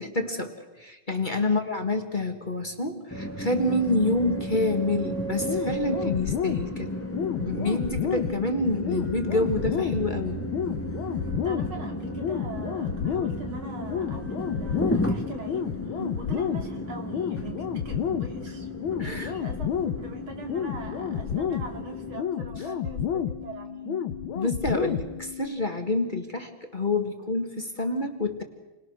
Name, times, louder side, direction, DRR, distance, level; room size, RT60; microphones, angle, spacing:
voice 1, 0.0-6.9 7.2-10.4 16.0-16.2 19.0-19.3 24.4-28.4, left 2 dB, 25° left, 4 dB, 1.8 m, -28 dB
voice 2, 1.4-1.7 11.4-18.7 19.0-24.0, right 3 dB, 85° right, 3 dB, 3.5 m, -42 dB
sound 1, 3.1-22.2, equal, 10° left, 1.3 m, -34 dB
sound 2, 5.5-25.5, left 8 dB, 90° left, 1.9 m, -31 dB
30.0 x 20.5 x 6.5 m, 1.1 s
omnidirectional pair, 2.2 m